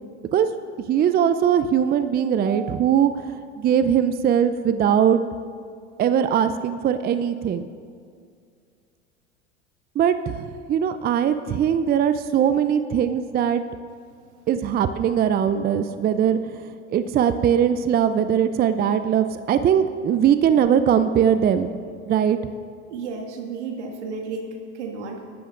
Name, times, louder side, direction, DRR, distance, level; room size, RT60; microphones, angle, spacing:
voice 1, 0.9-5.2 6.0-7.7 10.0-13.6 14.5-16.6 16.9-21.7 22.1-22.4, right 8 dB, 25° right, 11 dB, 0.5 m, -20 dB
voice 2, 22.9-25.2, right 4 dB, 75° right, 2 dB, 2.0 m, -33 dB
19.5 x 13.0 x 2.6 m, 2.2 s
hypercardioid pair, 85°, 35 cm